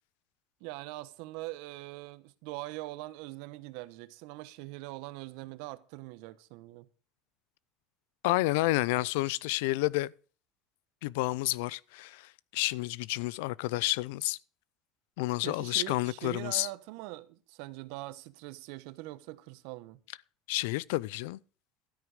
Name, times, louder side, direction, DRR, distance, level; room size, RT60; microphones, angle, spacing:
voice 1, 0.6-6.9 15.4-20.0, right 19 dB, 70° right, 1.1 m, -42 dB
voice 2, 8.2-10.1 11.0-14.4 15.2-16.7 20.5-21.4, left 19 dB, 80° left, 0.5 m, -30 dB
13.0 x 9.3 x 4.9 m
supercardioid pair, 115°, 0 cm